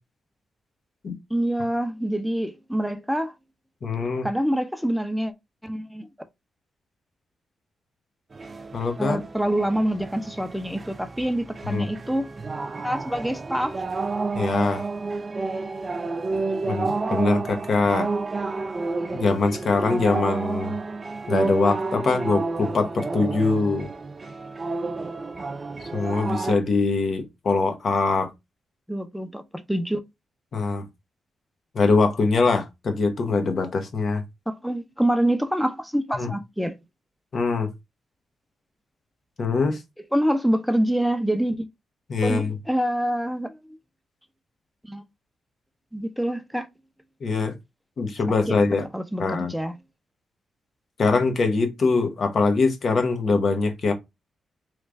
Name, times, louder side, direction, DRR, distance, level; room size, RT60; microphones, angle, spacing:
voice 1, 1.3-3.3 4.2-5.3 5.6-6.1 9.0-12.3 12.8-13.8 19.9-20.0 28.9-30.0 34.5-36.8 40.1-41.7 42.2-43.6 44.8-45.0 45.9-46.7 48.5-48.6 48.9-49.7, right 1 dB, ahead, 0.6 m, -26 dB
voice 2, 3.8-4.3 8.7-9.2 11.7-11.9 14.3-14.8 16.6-18.1 19.1-20.7 21.3-23.9 25.9-28.3 30.5-30.9 31.7-34.2 36.1-36.3 37.3-37.7 39.4-39.8 42.1-42.5 47.2-47.5 48.0-48.9 49.2-49.5 51.0-53.9, left 4 dB, 55° left, 0.9 m, -23 dB
sound 1, 8.3-26.5, right 3 dB, 35° right, 0.4 m, -30 dB
3.2 x 2.5 x 3.3 m
cardioid pair, 70°, 0 cm